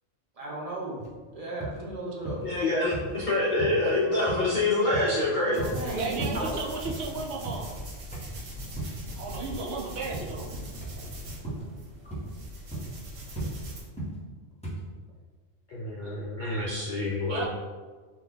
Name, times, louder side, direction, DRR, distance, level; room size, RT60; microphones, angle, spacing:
voice 1, 0.4-1.0 1.3-2.4 5.5-6.5, right 1 dB, 35° right, -6 dB, 0.8 m, -35 dB
sound 1, 1.0-1.1 1.6-1.8 2.2-2.5 2.9-3.1 3.6-3.8 4.3-4.5 4.9-5.2 5.6-5.9 6.2-6.4 6.8-7.7 8.1-8.4 8.8-9.0 9.5-9.7 10.1-10.4 10.8-11.0 11.4-11.7 12.1-12.3 12.7-13.0 13.4-13.5 14.0-14.2 14.6-14.8, right 2 dB, 5° left, 0.6 m, -36 dB
voice 2, 2.4-5.6 15.7-17.5, left 2 dB, 65° left, -5 dB, 0.5 m, -26 dB
sound 2, 5.5-13.8, equal, 90° right, 1.2 m, -41 dB
voice 3, 6.0-7.7 9.2-10.4 17.3-17.5, right 3 dB, 70° right, -2 dB, 0.8 m, -34 dB
3.2 x 2.3 x 3.7 m, 1.4 s
omnidirectional pair, 1.3 m